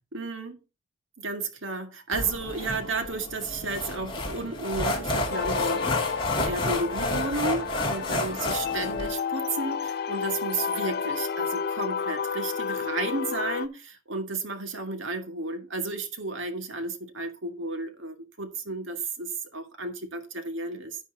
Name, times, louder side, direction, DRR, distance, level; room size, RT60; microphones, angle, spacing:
voice 1, 0.1-0.6 1.2-21.0, right 3 dB, 75° right, 1.8 m, -33 dB
sound 1, 2.1-9.1, left 1 dB, 25° left, 2.5 m, -30 dB
sound 2, 5.3-13.7, left 6 dB, 50° left, 0.4 m, -31 dB
10.0 x 10.0 x 2.8 m
head